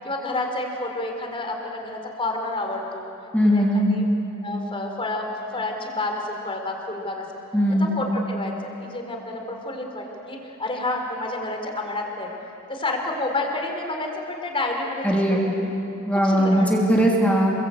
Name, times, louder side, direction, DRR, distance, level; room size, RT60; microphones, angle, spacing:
voice 1, 0.0-3.1 3.4-3.6 3.9-4.1 4.4-5.3 5.5-7.2 7.9-12.3 12.7-15.7 16.1-16.7, left 2 dB, 25° left, 2 dB, 3.9 m, -29 dB
voice 2, 3.3-3.9 7.5-7.9 15.0-15.5 16.1-17.5, equal, 5° left, -2 dB, 3.0 m, -19 dB
28.0 x 22.5 x 8.6 m, 2.9 s
head